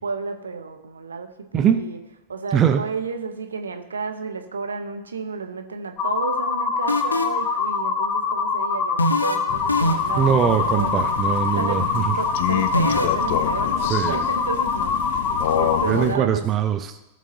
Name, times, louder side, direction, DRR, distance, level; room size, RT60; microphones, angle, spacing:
voice 1, 0.0-2.0 2.3-11.2 11.5-11.8 12.2-16.5, right 5 dB, 70° right, 6 dB, 0.9 m, -32 dB
voice 2, 1.5-1.8 2.5-2.8 10.2-12.1 13.9-14.2 15.9-17.0, right 8 dB, 30° right, 8 dB, 0.6 m, -21 dB
sound 1, 6.0-15.9, left 5 dB, 30° left, 0.8 m, -24 dB
sound 2, 6.9-7.5 9.0-9.4 9.7-10.2 12.7-13.1, left 1 dB, 80° left, 0.8 m, -21 dB
Crow, 9.5-16.2, left 11 dB, 55° left, 0.4 m, -29 dB
17.5 x 6.1 x 2.8 m, 0.98 s
figure-of-eight pair, 90°, 0 cm